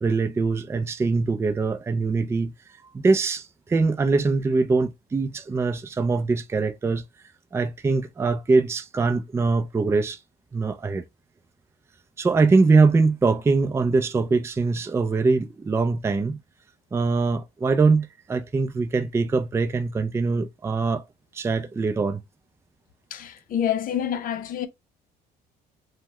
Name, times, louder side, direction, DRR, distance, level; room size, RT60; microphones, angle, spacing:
voice 1, 0.0-2.5 2.9-7.0 7.5-10.2 10.5-11.0 12.2-16.4 16.9-21.0 21.3-22.2, right 4 dB, 15° right, 0.4 m, -22 dB
voice 2, 23.1-24.7, left 9 dB, 55° left, 0.6 m, -27 dB
3.3 x 2.1 x 2.9 m
cardioid pair, 110°, 17 cm